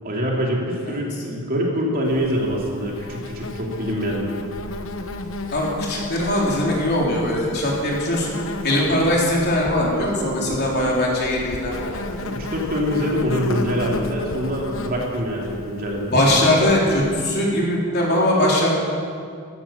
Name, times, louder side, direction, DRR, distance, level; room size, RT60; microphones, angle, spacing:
voice 1, 0.0-4.3 10.4-10.6 11.7-11.8 12.2-16.4, equal, 40° right, -2 dB, 2.9 m, -25 dB
Insect, 2.0-17.2, left 2 dB, 65° left, 1.1 m, -34 dB
voice 2, 5.5-8.3 8.6-12.0 16.1-18.7, left 1 dB, 45° left, -3 dB, 3.8 m, -20 dB
15.0 x 13.5 x 7.2 m, 2.3 s
head